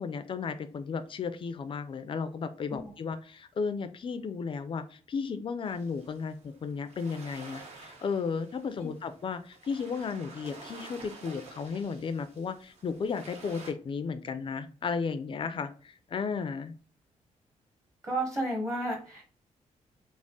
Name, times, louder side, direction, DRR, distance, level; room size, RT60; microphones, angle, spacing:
voice 1, 0.0-16.7, left 5 dB, 40° left, 10 dB, 0.4 m, -34 dB
sound 1, 5.6-13.7, right 3 dB, 55° right, 1.0 m, -50 dB
voice 2, 18.0-19.2, right 1 dB, 20° right, 0 dB, 1.1 m, -32 dB
3.6 x 2.0 x 3.8 m, 0.42 s
cardioid pair, 120°, 13 cm